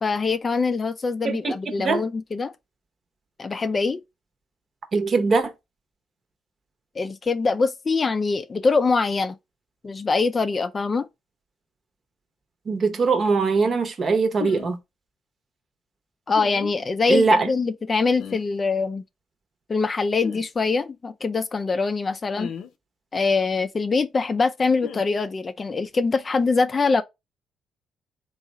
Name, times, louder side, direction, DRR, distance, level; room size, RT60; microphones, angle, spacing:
voice 1, 0.0-2.5 3.4-4.0 7.0-9.4 9.8-11.1 16.3-19.0 19.7-22.5 23.1-27.0, left 4 dB, 35° left, 0.4 m, -23 dB
voice 2, 4.9-5.5 12.7-14.8 17.1-17.5, right 4 dB, 45° right, 0.8 m, -21 dB
sound 1, 14.4-14.7 16.3-16.7 18.2-18.4 20.2-20.4 22.3-22.7 24.8-25.0, left 7 dB, 75° left, 0.6 m, -34 dB
3.6 x 2.4 x 4.0 m
cardioid pair, 90°, 0 cm